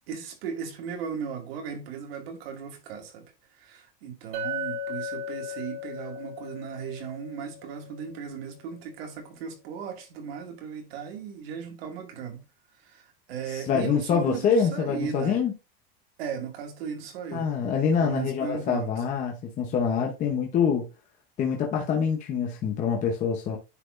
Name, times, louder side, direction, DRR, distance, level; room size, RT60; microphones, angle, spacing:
voice 1, 0.1-3.3 3.6-12.4 12.8-15.4 16.2-17.5 18.0-19.0, right 7 dB, 85° right, 2.4 m, -36 dB
Chink clink, 4.3-8.5, left 2 dB, 55° right, 1.9 m, -36 dB
voice 2, 13.5-15.5 17.3-20.9 21.4-23.6, left 6 dB, 25° left, 0.9 m, -25 dB
9.9 x 4.2 x 2.6 m
supercardioid pair, 165°, 29 cm